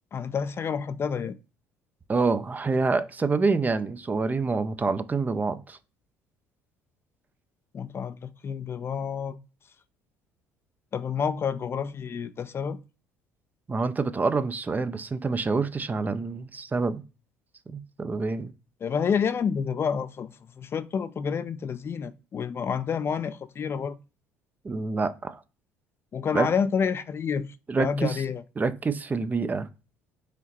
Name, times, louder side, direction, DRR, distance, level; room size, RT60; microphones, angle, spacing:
voice 1, 0.1-1.4 7.7-9.4 10.9-12.8 18.8-24.0 26.1-28.4, left 6 dB, 35° left, 0.4 m, -29 dB
voice 2, 2.1-5.8 13.7-17.0 17.7-18.5 24.6-25.4 26.3-26.5 27.7-28.2 28.6-29.7, right 4 dB, 25° right, 0.5 m, -27 dB
4.9 x 2.7 x 3.0 m
hypercardioid pair, 60°, 7 cm